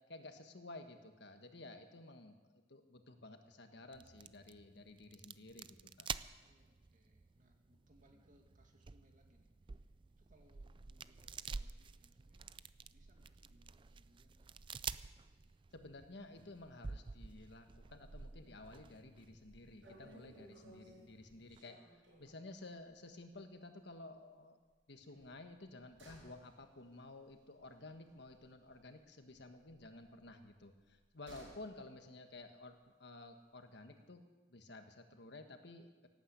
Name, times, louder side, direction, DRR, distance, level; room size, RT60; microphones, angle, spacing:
voice 1, 0.1-6.1 15.7-24.6 24.9-34.2 34.5-36.1, left 2 dB, 65° left, 6 dB, 1.5 m, -53 dB
sound 1, 3.9-21.6, right 5 dB, 25° right, 0.4 m, -50 dB
voice 2, 6.4-12.5 12.9-14.5, equal, 45° right, 3 dB, 2.2 m, -71 dB
sound 2, 19.4-19.5 19.8-22.5 22.9-23.1 23.3-23.4 25.1-29.0 29.3-31.7 32.0-32.1, right 1 dB, 70° right, 6.9 m, -61 dB
18.0 x 9.1 x 8.1 m, 1.3 s
head